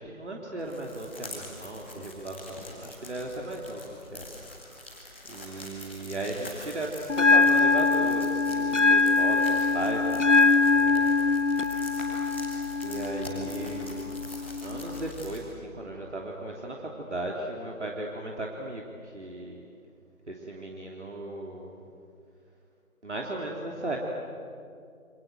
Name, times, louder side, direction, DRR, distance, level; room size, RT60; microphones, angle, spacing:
voice 1, 0.0-4.2 5.3-10.3 10.7-11.1 12.8-14.1 14.6-19.6 20.3-21.8 23.0-24.0, right 1 dB, 50° right, -1 dB, 3.3 m, -36 dB
sound 1, 0.6-15.4, left 1 dB, 10° left, 2.2 m, -45 dB
Bell, 7.1-15.1, left 4 dB, 55° left, 0.8 m, -23 dB
29.0 x 27.0 x 7.7 m, 2.4 s
figure-of-eight pair, 175°, 43 cm